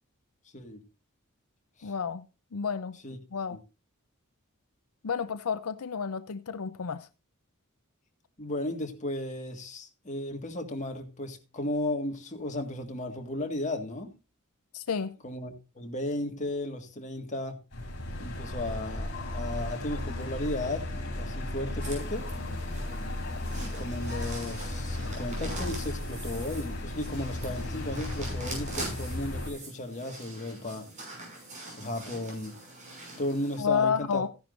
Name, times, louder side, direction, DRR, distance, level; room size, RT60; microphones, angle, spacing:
voice 1, 1.8-2.2 2.5-3.0 3.3-3.6 5.0-7.1 14.7-15.1 33.6-34.3, left 6 dB, 80° left, 0.6 m, -30 dB
voice 2, 8.4-14.1 15.2-17.6 18.2-22.3 23.6-30.9 31.7-32.6 33.2-34.2, left 1 dB, 35° left, 1.8 m, -35 dB
sound 1, 17.7-29.5, left 1 dB, 55° left, 4.9 m, -35 dB
sound 2, 21.8-33.6, right 2 dB, 35° right, 6.2 m, -43 dB
15.0 x 10.5 x 2.6 m
head